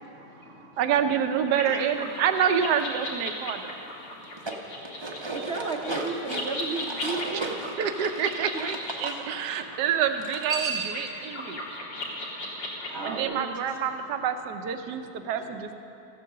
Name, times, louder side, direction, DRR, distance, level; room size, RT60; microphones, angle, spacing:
voice 1, 0.1-0.8 1.6-1.8 4.0-4.2 4.5-5.3 9.2-9.8 11.0-12.9 14.9-15.3, left 2 dB, 50° left, 2 dB, 0.8 m, -51 dB
voice 2, 0.8-3.8 7.3-7.5 7.8-11.6 13.0-15.7, right 8 dB, 80° right, 8 dB, 1.3 m, -27 dB
sound 1, 1.4-13.2, left 1 dB, 75° left, 2.4 m, -37 dB
sound 2, 4.2-9.2 10.2-11.1, right 3 dB, 25° right, 0.6 m, -34 dB
voice 3, 5.2-7.7 12.9-13.5, right 4 dB, 55° right, 1 dB, 0.8 m, -33 dB
15.0 x 8.4 x 6.6 m, 2.7 s
omnidirectional pair, 1.8 m